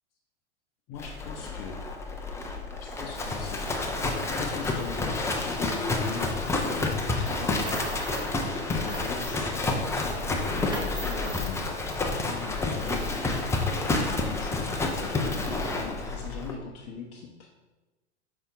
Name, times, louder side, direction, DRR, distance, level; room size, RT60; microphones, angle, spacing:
voice 1, 0.9-1.8 2.8-3.6 4.4-7.8 8.7-11.7 12.3-17.5, left 6 dB, 40° left, -2 dB, 0.8 m, -41 dB
Livestock farm animals working animals, 1.0-16.5, left 3 dB, 10° left, 0.5 m, -29 dB
sound 1, 7.4-8.3 8.7-9.6 10.0-11.5, right 1 dB, 15° right, 1.1 m, -40 dB
5.6 x 4.4 x 3.8 m, 1.1 s
hypercardioid pair, 95°, 34 cm